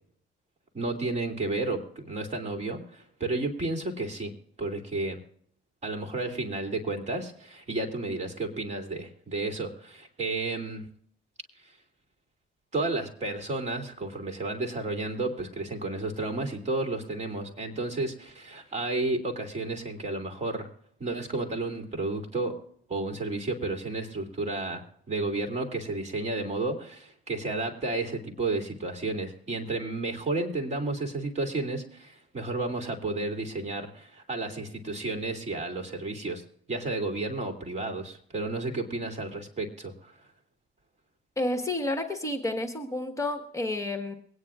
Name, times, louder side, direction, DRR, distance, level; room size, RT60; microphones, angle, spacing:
voice 1, 0.7-4.3 4.6-5.2 5.8-10.8 11.6-11.7 12.7-20.7 21.0-22.6 22.9-36.4 36.7-40.1, right 2 dB, 35° right, 4 dB, 2.5 m, -32 dB
voice 2, 41.4-44.1, left 2 dB, 15° left, 5 dB, 1.4 m, -30 dB
23.5 x 9.6 x 2.4 m, 0.63 s
cardioid pair, 90°, 20 cm